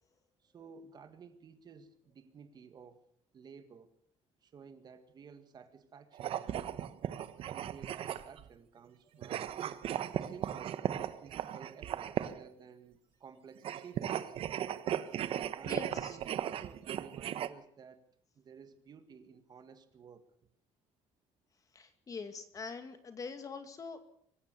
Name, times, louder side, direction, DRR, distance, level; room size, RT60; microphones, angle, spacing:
voice 1, 0.4-3.0 3.3-3.9 4.4-6.7 7.5-9.6 10.2-10.9 11.2-14.4 15.5-18.0 18.4-20.3, right 6 dB, 35° right, 9 dB, 1.9 m, -54 dB
sound 1, 6.1-8.5 9.2-12.5 13.6-17.5, right 10 dB, 55° right, 1.2 m, -37 dB
voice 2, 15.6-16.2 21.7-24.0, left 5 dB, 30° left, 9 dB, 2.2 m, -44 dB
25.0 x 15.5 x 6.9 m, 0.65 s
cardioid pair, 155°, 12 cm